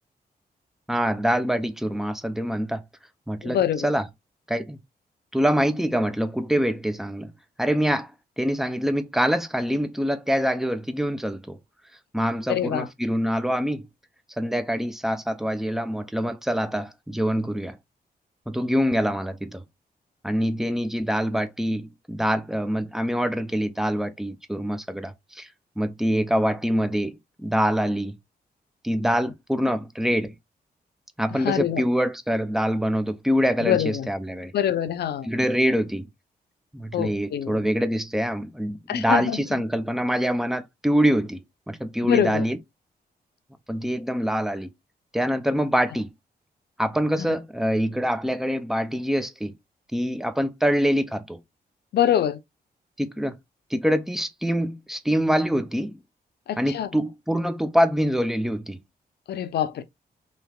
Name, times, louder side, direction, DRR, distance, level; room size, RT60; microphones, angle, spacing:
voice 1, 0.9-2.8 3.3-3.6 3.8-4.0 4.5-4.8 5.3-7.3 7.6-8.1 8.4-11.6 12.1-13.9 14.4-17.8 18.5-19.6 20.2-25.5 25.8-28.2 28.8-30.3 31.2-34.5 35.2-36.1 36.7-41.4 41.7-42.6 43.7-44.7 45.1-46.1 46.8-49.5 49.9-51.4 53.0-53.4 53.7-56.0 56.6-58.8, equal, ahead, 0.4 m, -25 dB
voice 2, 3.4-3.9 12.5-12.9 31.3-31.8 33.6-34.1 34.5-35.3 36.9-37.6 38.9-39.6 42.0-42.4 47.2-47.3 51.9-52.4 56.5-56.9 59.3-59.8, left 10 dB, 80° left, 0.5 m, -25 dB
3.3 x 2.8 x 2.2 m
wide cardioid pair, 150°, 17 cm